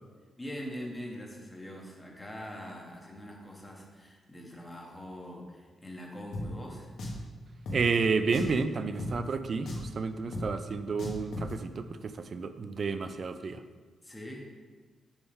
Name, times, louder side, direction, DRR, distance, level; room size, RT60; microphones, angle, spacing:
voice 1, 0.4-6.9 14.0-14.5, equal, 15° left, 0 dB, 1.2 m, -43 dB
Drum, 6.3-6.5 7.0-7.2 7.7-7.8 8.3-8.6 9.0-9.1 9.7-9.9 10.3-10.5 11.0-11.5, left 1 dB, 70° left, 1.1 m, -36 dB
voice 2, 7.7-13.6, right 4 dB, 45° right, 10 dB, 0.4 m, -31 dB
7.0 x 3.6 x 5.5 m, 1.4 s
cardioid pair, 135°, 0 cm